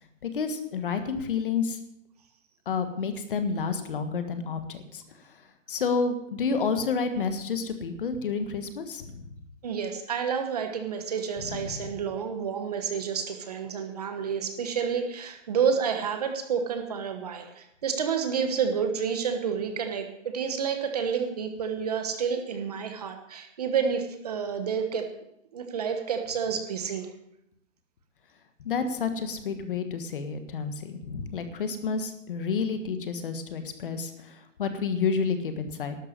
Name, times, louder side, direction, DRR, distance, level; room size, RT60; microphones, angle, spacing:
voice 1, 0.2-1.8 2.6-5.0 5.7-9.3 11.5-11.8 28.6-36.0, left 5 dB, 45° left, 8 dB, 1.5 m, -30 dB
voice 2, 9.6-25.1 25.5-27.1, right 6 dB, 30° right, 6 dB, 1.2 m, -29 dB
12.0 x 10.5 x 7.5 m, 0.79 s
hypercardioid pair, 180°, 38 cm